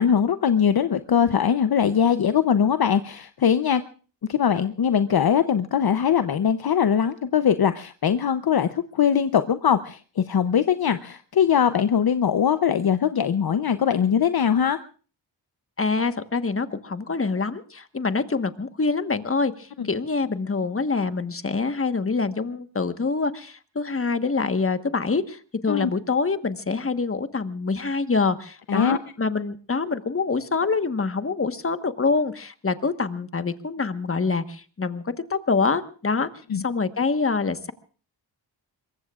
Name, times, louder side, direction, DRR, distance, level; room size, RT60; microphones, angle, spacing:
voice 1, 0.0-3.8 4.3-14.8 19.8-19.9 25.7-25.9 28.7-29.0 36.5-36.6, left 8 dB, 55° left, 10 dB, 0.8 m, -21 dB
voice 2, 15.8-36.3 36.5-37.7, left 4 dB, 30° left, 10 dB, 1.3 m, -25 dB
26.0 x 23.0 x 2.4 m, 0.39 s
wide cardioid pair, 90°, 44 cm